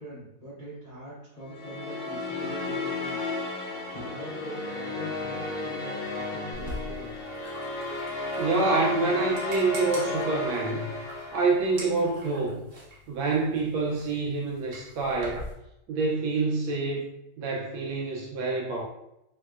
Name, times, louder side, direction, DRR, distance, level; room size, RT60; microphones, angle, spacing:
voice 1, 0.0-3.2 3.5-7.3, equal, 30° left, -10 dB, 0.7 m, -43 dB
sound 1, 1.5-11.9, left 2 dB, 75° left, 0.7 m, -33 dB
sound 2, 6.5-15.5, equal, 55° right, 0.9 m, -43 dB
voice 2, 8.4-10.8 11.3-12.7 13.1-15.5 15.9-17.1 17.4-18.8, right 3 dB, 75° right, -2 dB, 1.2 m, -27 dB
3.4 x 2.8 x 2.3 m, 0.86 s
omnidirectional pair, 2.3 m